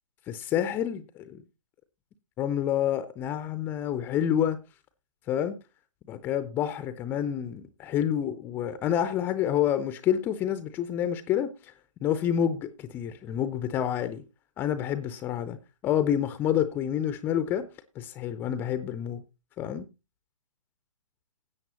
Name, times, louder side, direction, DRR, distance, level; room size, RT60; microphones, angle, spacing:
voice 1, 0.3-1.4 2.4-4.6 5.3-5.5 6.1-11.7 12.0-14.2 14.6-17.7 18.0-19.2 19.6-19.9, left 10 dB, 10° left, 0.5 m, -28 dB
16.0 x 8.9 x 2.9 m
figure-of-eight pair, 130°, 18 cm